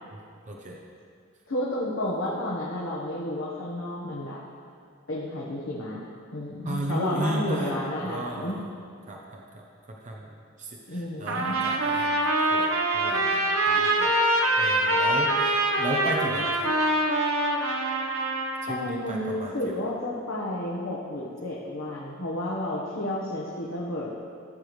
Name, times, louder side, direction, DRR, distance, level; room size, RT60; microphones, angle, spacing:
voice 1, 0.5-0.8 6.6-7.7 8.0-8.8 9.1-9.6 10.0-10.3 10.6-12.7 12.9-16.7 18.6-19.8, right 1 dB, 35° right, -1 dB, 0.8 m, -34 dB
voice 2, 1.5-4.4 5.1-6.0 6.3-8.6 10.9-11.6 18.7-24.2, left 1 dB, 70° left, -6 dB, 1.2 m, -31 dB
Trumpet, 11.3-18.7, right 1 dB, 85° right, 0.9 m, -24 dB
15.0 x 6.9 x 3.2 m, 2.3 s
head